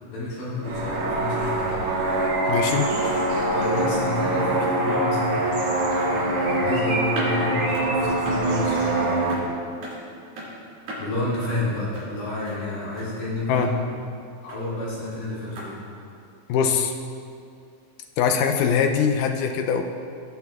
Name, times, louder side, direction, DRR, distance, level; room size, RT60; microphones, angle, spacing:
voice 1, 0.0-1.8 3.5-9.4 11.0-13.9 14.4-15.8, left 2 dB, 65° left, -8 dB, 3.8 m, -30 dB
sound 1, 0.6-9.3, right 2 dB, 60° right, 1.5 m, -24 dB
voice 2, 2.5-2.9 13.5-13.7 16.5-16.9 18.2-19.9, left 7 dB, 85° left, 4 dB, 1.9 m, -22 dB
sound 2, 2.9-3.2 3.5-3.6 4.4-5.0 5.8-6.1 7.1-7.3 7.7-7.9 8.2-8.4 8.8-8.9 9.3-9.4 9.8-9.9 10.4-10.5 10.9-11.0 11.4-11.5 11.9-12.1 12.5-12.6 13.0-13.1 13.5-13.6 14.5-14.6 15.5-15.7, right 1 dB, 80° right, 4.4 m, -36 dB
18.5 x 7.5 x 2.4 m, 2.4 s
omnidirectional pair, 4.2 m